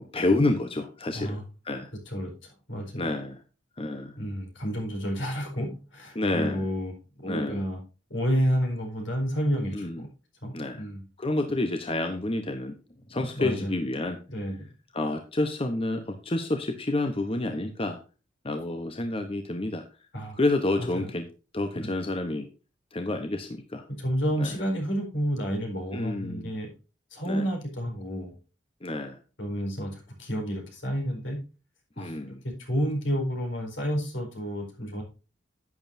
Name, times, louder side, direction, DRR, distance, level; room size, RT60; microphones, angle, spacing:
voice 1, 0.1-1.4 1.6-1.9 3.0-3.4 3.8-4.2 6.1-6.7 7.3-7.6 9.7-10.0 10.5-10.8 11.2-12.8 13.1-14.2 14.9-18.0 18.4-19.8 20.4-21.3 21.5-22.5 22.9-23.8 24.4-24.6 25.9-26.5 27.3-27.5 28.8-29.2 32.0-32.4, left 2 dB, 30° left, 7 dB, 0.9 m, -29 dB
voice 2, 2.7-3.1 4.2-6.9 7.2-7.8 8.1-10.1 10.4-11.0 13.3-13.7 14.3-14.7 20.1-20.4 20.8-21.1 21.8-21.9 24.0-26.7 27.1-28.3 29.4-31.4 32.0-35.0, equal, 75° left, 2 dB, 4.6 m, -30 dB
11.0 x 9.2 x 2.7 m, 0.33 s
head